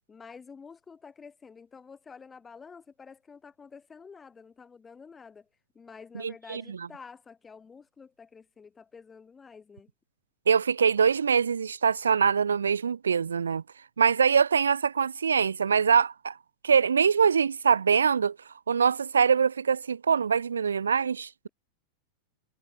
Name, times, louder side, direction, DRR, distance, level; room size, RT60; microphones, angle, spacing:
voice 1, 0.1-5.5 5.8-9.9, left 5 dB, 15° left, 6.8 m, -49 dB
voice 2, 6.2-6.6 10.5-13.6 14.0-16.4 16.6-18.4 18.7-21.5, right 6 dB, 70° right, 0.4 m, -23 dB
figure-of-eight pair, 90°, 0 cm